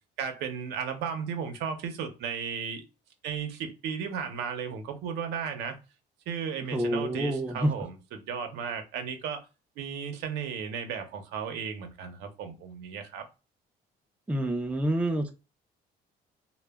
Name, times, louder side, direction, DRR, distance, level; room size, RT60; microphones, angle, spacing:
voice 1, 0.2-2.8 3.2-5.8 6.3-9.4 9.8-13.2, right 7 dB, 85° right, 0.7 m, -35 dB
voice 2, 6.7-7.7 14.3-15.3, right 1 dB, 5° right, 0.4 m, -27 dB
2.1 x 2.1 x 3.4 m
cardioid pair, 110°, 17 cm